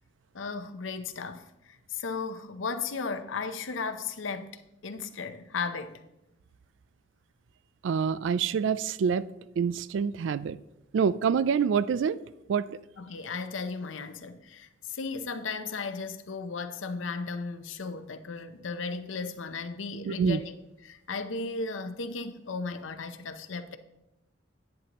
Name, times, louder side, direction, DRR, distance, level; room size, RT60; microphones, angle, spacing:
voice 1, 0.3-1.5 1.9-4.5 4.8-6.0 13.0-20.6 20.8-23.8, left 4 dB, 90° left, 0.7 m, -35 dB
voice 2, 7.8-9.2 9.6-10.6 10.9-12.2 12.5-12.7 20.0-20.4, right 6 dB, 75° right, 0.3 m, -26 dB
10.5 x 9.5 x 3.0 m
head